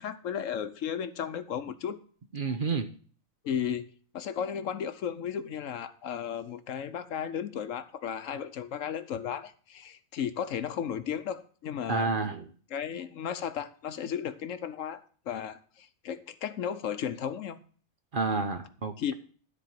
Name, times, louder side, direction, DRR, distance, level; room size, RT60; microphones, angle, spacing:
voice 1, 0.0-2.0 3.4-3.9 4.1-12.1 12.7-17.6 19.0-19.1, left 8 dB, 70° left, 1.1 m, -34 dB
voice 2, 2.3-2.9 11.9-12.5 18.1-18.9, right 4 dB, 45° right, 0.9 m, -29 dB
13.0 x 4.4 x 7.5 m
omnidirectional pair, 1.4 m